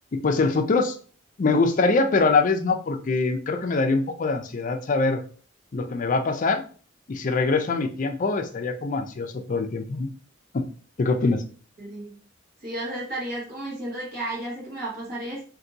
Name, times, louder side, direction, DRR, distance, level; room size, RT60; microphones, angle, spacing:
voice 1, 0.1-1.0 1.4-5.2 5.7-6.6 7.1-10.1 10.5-10.7 11.0-11.4, left 3 dB, 40° left, 7 dB, 0.4 m, -23 dB
voice 2, 11.8-12.2 12.6-15.5, right 1 dB, 50° right, -6 dB, 1.3 m, -33 dB
2.6 x 2.6 x 3.8 m, 0.41 s
head